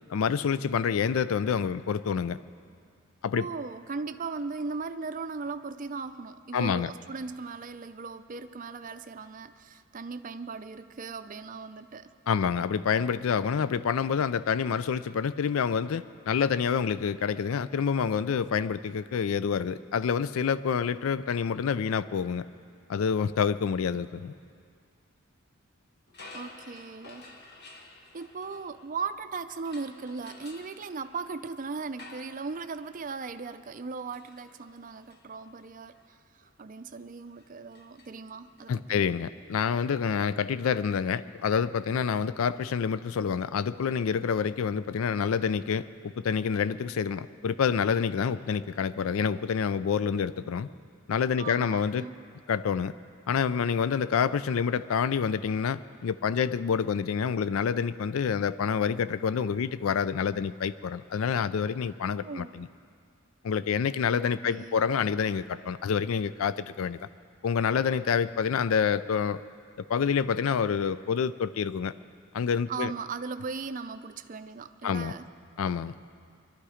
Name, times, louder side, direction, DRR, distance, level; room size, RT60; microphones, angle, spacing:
voice 1, 0.1-2.4 3.2-3.5 6.5-6.9 12.3-22.4 22.9-24.3 38.7-50.7 51.1-52.0 52.5-52.9 53.3-62.7 63.4-67.1 67.4-69.4 69.9-71.9 72.3-72.9 74.8-75.1 75.6-76.0, left 6 dB, 70° left, 15 dB, 0.4 m, -27 dB
voice 2, 3.3-12.1 26.3-27.4 28.1-39.0 51.4-52.2 62.1-62.7 64.1-64.9 72.7-75.2, right 4 dB, 40° right, 11 dB, 0.5 m, -38 dB
sound 1, 26.1-29.2 29.6-38.7, left 3 dB, 50° left, 1.4 m, -52 dB
21.5 x 12.5 x 5.0 m, 2.2 s
head